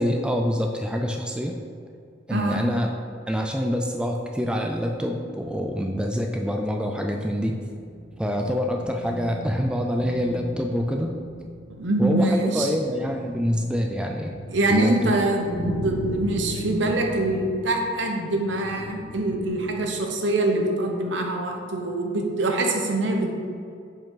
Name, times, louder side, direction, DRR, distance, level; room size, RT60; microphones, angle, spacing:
voice 1, 0.0-1.6 2.3-2.9 3.3-7.6 8.2-11.1 12.0-14.4 14.7-14.9, equal, 5° right, 2 dB, 0.3 m, -26 dB
voice 2, 2.3-2.6 11.7-12.7 14.5-23.3, right 2 dB, 65° right, 3 dB, 0.9 m, -24 dB
sound 1, 7.7-20.0, equal, 30° left, 1.5 m, -37 dB
7.1 x 5.0 x 3.9 m, 2.3 s
head